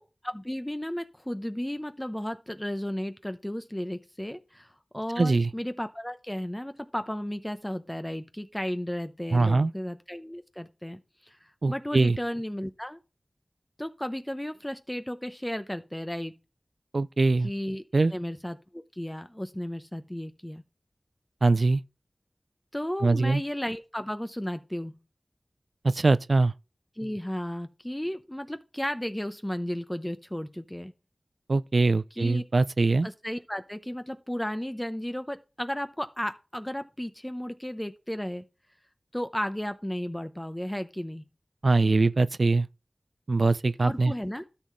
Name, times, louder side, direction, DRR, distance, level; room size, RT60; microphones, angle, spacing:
voice 1, 0.0-11.4 11.7-13.0 13.8-16.3 17.4-17.8 18.1-20.6 22.7-24.9 27.0-30.9 32.1-32.4 33.0-38.4 39.1-41.2 43.8-44.4, equal, 15° left, 0.8 m, -34 dB
voice 2, 5.2-5.5 9.3-9.7 11.6-12.2 16.9-17.5 17.9-18.1 21.4-21.8 23.0-23.4 25.8-26.5 31.5-33.1 41.6-42.7 43.3-44.1, right 3 dB, 75° right, 0.4 m, -22 dB
12.5 x 5.7 x 3.2 m
wide cardioid pair, 40°, 0 cm